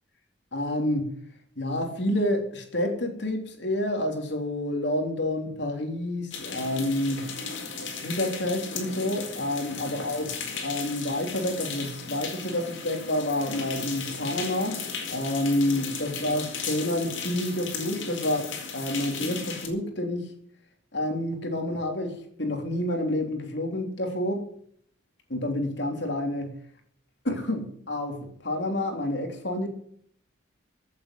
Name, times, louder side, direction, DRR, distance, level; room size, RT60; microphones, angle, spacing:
voice 1, 0.5-1.2 1.6-7.4 8.0-14.8 15.1-18.5 18.7-20.3 20.9-24.5 25.3-26.6 27.2-29.7, left 1 dB, 60° left, 3.6 m, -29 dB
sound 1, 6.3-19.7, left 5 dB, 80° left, 4.4 m, -36 dB
15.5 x 8.5 x 8.4 m
head